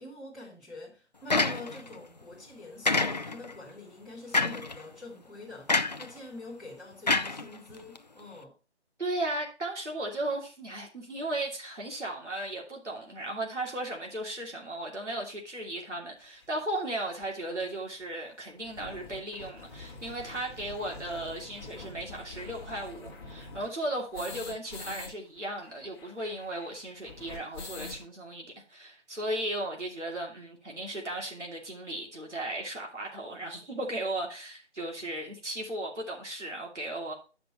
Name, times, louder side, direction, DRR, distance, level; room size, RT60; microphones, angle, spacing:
voice 1, 0.0-8.5, left 2 dB, ahead, 1.2 m, -46 dB
sound 1, 1.3-1.9 2.8-3.5 4.3-4.7 5.7-6.1 7.1-8.0, left 3 dB, 40° left, 0.4 m, -27 dB
voice 2, 9.0-37.1, right 1 dB, 90° right, 2.9 m, -36 dB
sound 2, 16.4-16.5 17.2-17.3 17.6-17.7 17.9-18.0 18.4-25.1 25.4-25.5 25.7-28.0, left 3 dB, 20° left, 1.4 m, -45 dB
8.7 x 5.9 x 4.2 m
figure-of-eight pair, 155°, 34 cm